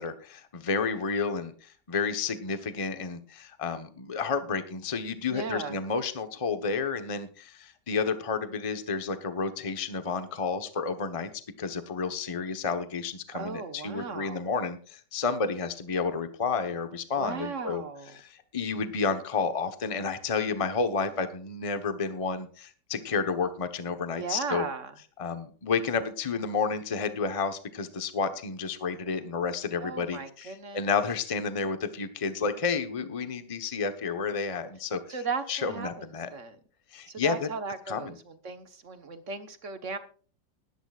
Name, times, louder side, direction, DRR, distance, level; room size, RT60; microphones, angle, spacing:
voice 1, 0.0-11.3 11.6-17.8 18.1-24.6 25.2-35.0 35.5-36.3 36.9-37.5 37.9-38.1, left 5 dB, 20° left, 8 dB, 1.0 m, -31 dB
voice 2, 5.3-5.8 13.3-14.5 17.1-18.2 24.1-24.9 29.8-30.9 35.1-36.1 36.3-36.6 37.1-40.0, right 4 dB, 45° right, 8 dB, 1.5 m, -36 dB
20.5 x 11.0 x 2.5 m, 0.41 s
omnidirectional pair, 2.0 m